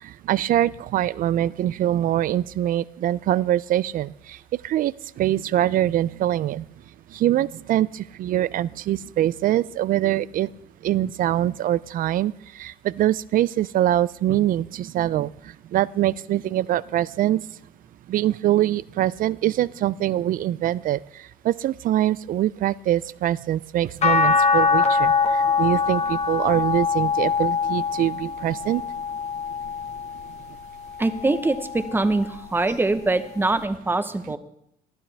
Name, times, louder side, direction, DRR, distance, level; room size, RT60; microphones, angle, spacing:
voice 1, 0.3-4.4 4.6-6.6 7.1-10.5 10.8-12.3 12.6-15.3 15.7-17.4 18.1-21.0 21.4-28.8, right 13 dB, 55° right, 21 dB, 0.4 m, -23 dB
sound 1, 24.0-30.3 30.9-32.2 33.6-33.7, left 5 dB, 40° left, 1.4 m, -23 dB
voice 2, 31.0-34.4, right 2 dB, 10° right, 11 dB, 0.9 m, -23 dB
19.5 x 12.0 x 3.4 m, 0.78 s
cardioid pair, 110°, 17 cm